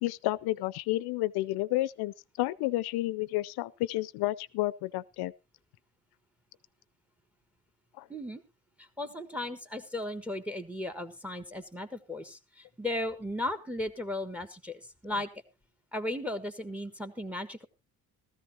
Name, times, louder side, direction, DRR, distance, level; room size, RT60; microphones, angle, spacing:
voice 1, 0.0-5.3 8.0-8.1, left 17 dB, 85° left, 0.6 m, -31 dB
voice 2, 8.1-8.4 8.8-15.3 15.9-17.7, left 1 dB, 5° right, 1.3 m, -36 dB
15.5 x 14.0 x 2.9 m
cardioid pair, 115°, 38 cm